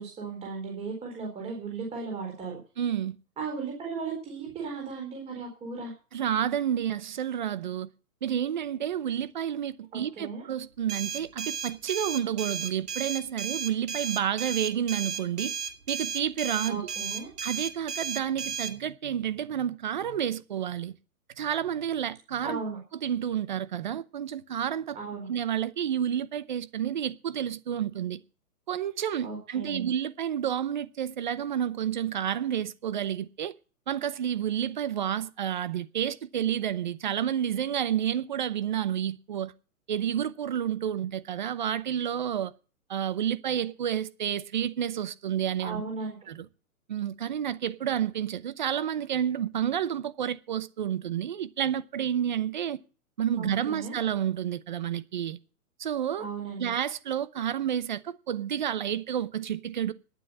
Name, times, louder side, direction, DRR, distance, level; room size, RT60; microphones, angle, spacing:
voice 1, 0.0-2.6 3.4-5.9 9.9-10.4 16.7-17.3 22.4-22.8 24.9-25.3 29.2-29.9 45.6-46.2 53.4-54.0 56.2-56.7, right 4 dB, 15° right, 4.2 m, -36 dB
voice 2, 2.8-3.2 6.1-7.9 8.2-15.5 15.9-16.9 17.4-21.0 21.4-22.6 23.0-25.0 25.3-28.2 28.7-33.5 33.9-39.5 39.9-42.5 42.9-45.8 46.3-46.5 46.9-52.8 53.2-55.4 55.8-56.3 56.6-59.9, right 9 dB, 30° right, 0.7 m, -30 dB
sound 1, 10.9-18.7, right 7 dB, 85° right, 2.5 m, -34 dB
10.5 x 9.3 x 8.5 m
hypercardioid pair, 165°, 46 cm